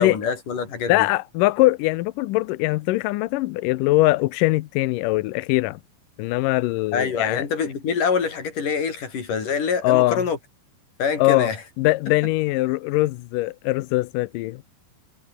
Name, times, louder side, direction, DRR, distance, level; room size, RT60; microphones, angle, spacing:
voice 1, 0.0-1.1 6.9-10.4 11.0-11.6, left 6 dB, 60° left, 5.6 m, -25 dB
voice 2, 0.9-5.8 6.2-7.5 9.8-10.2 11.2-11.5 11.8-14.6, left 19 dB, 80° left, 2.0 m, -21 dB
omnidirectional pair, 4.3 m